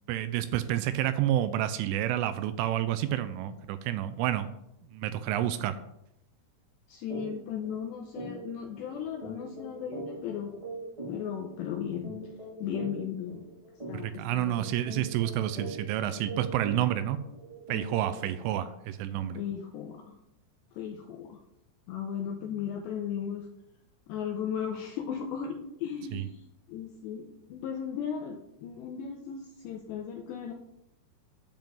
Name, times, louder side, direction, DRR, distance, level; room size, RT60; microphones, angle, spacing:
voice 1, 0.1-4.5 4.9-5.8 13.9-17.2 17.7-19.4 26.1-26.2, right 12 dB, 85° right, 11 dB, 2.9 m, -29 dB
voice 2, 6.9-10.5 11.1-12.1 12.6-13.4 13.9-14.7 19.3-20.1 20.7-21.4 21.9-23.5 24.1-26.4 26.7-30.5, left 8 dB, 85° left, 3 dB, 2.5 m, -36 dB
sound 1, 7.1-7.3 7.6-7.8 8.1-18.4, right 1 dB, 45° right, 0.4 m, -42 dB
9.1 x 5.3 x 7.5 m, 0.84 s
omnidirectional pair, 5.9 m